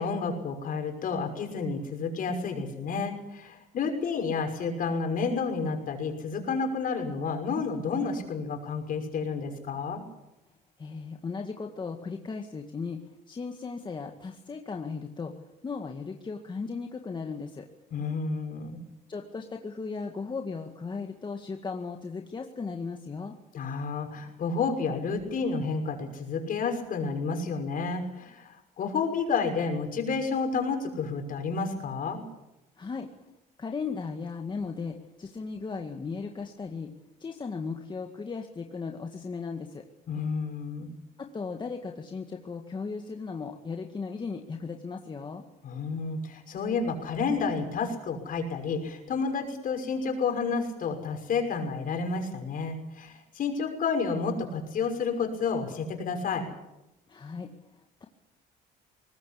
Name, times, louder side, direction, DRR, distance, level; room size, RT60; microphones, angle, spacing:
voice 1, 0.0-10.0 17.9-18.8 23.5-32.2 40.1-40.9 45.6-56.5, left 4 dB, 55° left, 5 dB, 6.1 m, -30 dB
voice 2, 10.8-13.0 13.3-15.3 15.6-17.7 19.1-23.3 32.8-33.1 33.6-36.9 37.2-39.9 41.2-45.4 57.1-58.0, left 4 dB, 25° left, 3 dB, 1.9 m, -36 dB
22.0 x 19.5 x 8.6 m, 0.90 s
cardioid pair, 110°, 17 cm